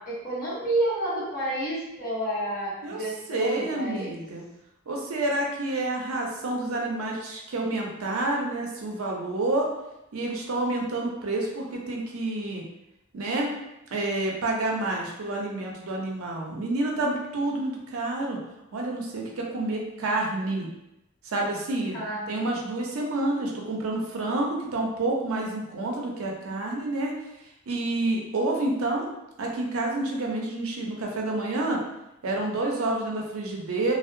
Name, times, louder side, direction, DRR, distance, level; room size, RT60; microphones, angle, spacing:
voice 1, 0.1-4.1 21.9-22.5, right 1 dB, 40° left, -9 dB, 1.1 m, -30 dB
voice 2, 3.3-4.4 4.9-9.7 10.1-12.6 13.1-13.5 13.9-18.4 18.7-20.7 21.2-22.0 22.3-27.2 27.7-29.1 29.4-31.8 32.2-33.9, right 2 dB, 80° right, -1 dB, 0.5 m, -28 dB
2.7 x 2.0 x 2.5 m, 0.90 s
head